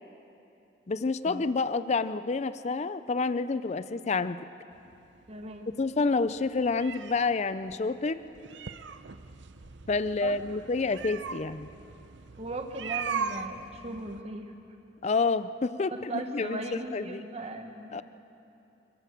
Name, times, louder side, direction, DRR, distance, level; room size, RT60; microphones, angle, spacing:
voice 1, 0.9-4.4 5.8-8.2 9.9-11.7 15.0-16.6 16.9-17.2 17.9-18.0, left 4 dB, 35° left, 13 dB, 0.4 m, -28 dB
sound 1, 4.7-14.2, right 6 dB, 75° right, 0.8 m, -40 dB
voice 2, 5.3-5.7 10.2-10.6 12.4-14.5 15.9-18.0, right 2 dB, 35° right, 4 dB, 1.3 m, -38 dB
27.5 x 15.5 x 6.8 m, 2.8 s
head